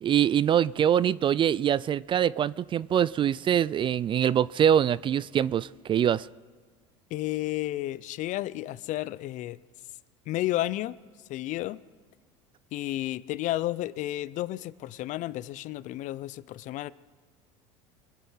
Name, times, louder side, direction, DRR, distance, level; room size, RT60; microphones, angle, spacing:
voice 1, 0.0-6.3, right 9 dB, 30° right, 21 dB, 0.4 m, -24 dB
voice 2, 7.1-9.6 10.3-11.0 11.3-11.8 12.7-16.9, left 15 dB, 55° left, 18 dB, 0.6 m, -32 dB
24.0 x 8.2 x 5.8 m, 1.5 s
hypercardioid pair, 90°, 16 cm